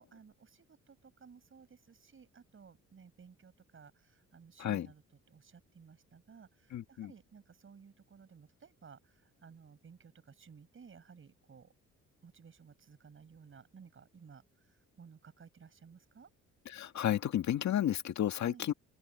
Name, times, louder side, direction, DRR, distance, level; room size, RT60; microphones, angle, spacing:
voice 1, 0.0-5.0 5.3-11.7 12.2-14.4 15.0-16.3 18.4-18.7, right 6 dB, 45° right, 6.7 m, -57 dB
voice 2, 6.7-7.1 16.7-18.7, left 11 dB, 65° left, 2.0 m, -32 dB
open air
cardioid pair, 90°, 30 cm